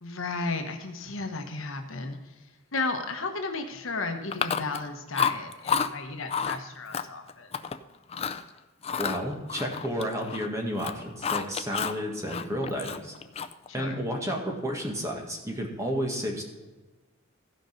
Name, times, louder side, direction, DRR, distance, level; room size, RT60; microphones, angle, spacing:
voice 1, 0.0-2.3 2.7-7.5 13.7-13.9, left 3 dB, 65° left, 5 dB, 1.2 m, -34 dB
Chewing mastication, 4.3-4.9 5.1-5.9 6.3-6.6 6.9-7.8 8.1-8.4 8.8-10.5 10.7-12.0 12.3-13.7, left 6 dB, 30° left, 0.4 m, -30 dB
voice 2, 9.0-13.1 13.7-16.4, equal, 15° right, 1 dB, 1.7 m, -31 dB
15.0 x 5.3 x 5.2 m, 1.2 s
head